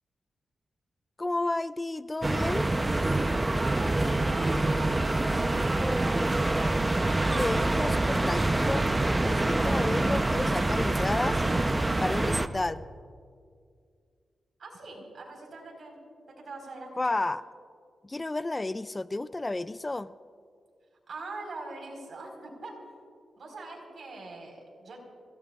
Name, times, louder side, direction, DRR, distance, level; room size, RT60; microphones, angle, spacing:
voice 1, 1.2-2.7 7.2-8.9 9.2-11.4 12.0-12.8 17.0-17.4 18.0-20.1, left 2 dB, 25° left, 15 dB, 0.4 m, -31 dB
sound 1, 2.2-12.5, right 2 dB, 20° right, 0.8 m, -26 dB
voice 2, 3.5-6.2 14.6-16.0 16.4-17.2 21.1-22.7 23.4-25.0, right 3 dB, 65° right, 0 dB, 4.9 m, -42 dB
27.5 x 18.0 x 2.5 m, 2.2 s
cardioid pair, 75°, 0 cm